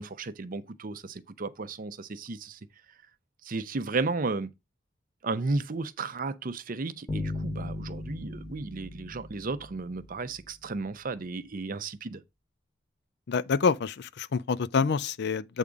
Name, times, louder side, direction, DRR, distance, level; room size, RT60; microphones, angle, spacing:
voice 1, 0.0-2.6 3.4-4.5 5.2-12.2, right 3 dB, 45° right, 0.6 m, -34 dB
sound 1, 7.1-10.5, left 2 dB, 20° left, 1.6 m, -37 dB
voice 2, 13.3-15.6, left 5 dB, 60° left, 0.4 m, -27 dB
8.3 x 3.6 x 5.1 m
head